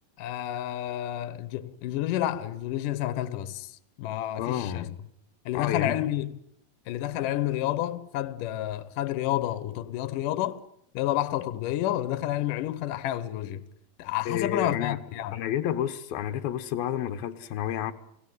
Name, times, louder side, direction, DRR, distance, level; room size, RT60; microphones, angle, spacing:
voice 1, 0.2-3.7 4.0-4.9 5.5-6.3 6.9-10.6 10.9-13.6 14.0-15.4, left 13 dB, 70° left, 2.6 m, -30 dB
voice 2, 4.4-5.0 5.5-6.1 14.3-15.0 15.3-17.9, left 10 dB, 90° left, 3.0 m, -30 dB
30.0 x 19.0 x 9.5 m
omnidirectional pair, 4.1 m